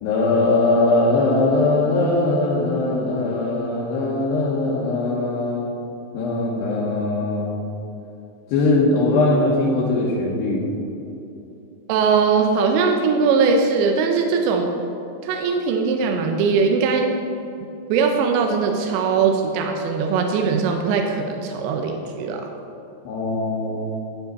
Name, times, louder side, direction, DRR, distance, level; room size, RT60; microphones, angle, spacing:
voice 1, 0.0-5.8 6.1-7.7 8.5-10.7 23.1-23.8, left 2 dB, 75° left, -6 dB, 3.2 m, -20 dB
voice 2, 11.9-14.7 15.2-17.2 17.9-22.5, right 5 dB, 85° right, 3 dB, 3.0 m, -20 dB
10.0 x 9.2 x 4.1 m, 2.9 s
omnidirectional pair, 5.0 m